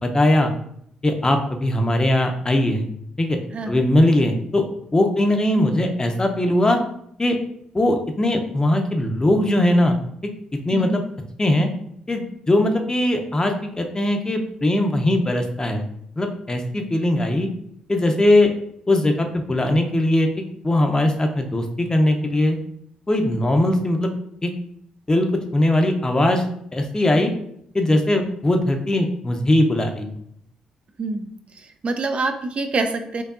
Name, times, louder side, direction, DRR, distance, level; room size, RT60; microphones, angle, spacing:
voice 1, 0.0-0.5 1.0-2.9 3.2-3.4 3.7-4.6 4.9-6.8 7.2-7.4 7.7-10.0 10.2-10.3 10.7-11.0 11.4-11.7 12.1-15.8 16.2-17.5 17.9-18.5 18.9-20.3 20.6-22.6 23.1-24.1 24.4-24.5 25.1-25.3 25.5-26.4 26.7-27.3 27.7-30.1, left 1 dB, 25° left, 4 dB, 0.6 m, -20 dB
voice 2, 3.5-3.9 10.7-11.0 31.0-33.2, right 3 dB, 45° right, 6 dB, 0.4 m, -26 dB
4.6 x 2.6 x 2.5 m, 0.71 s
hypercardioid pair, 50°, 3 cm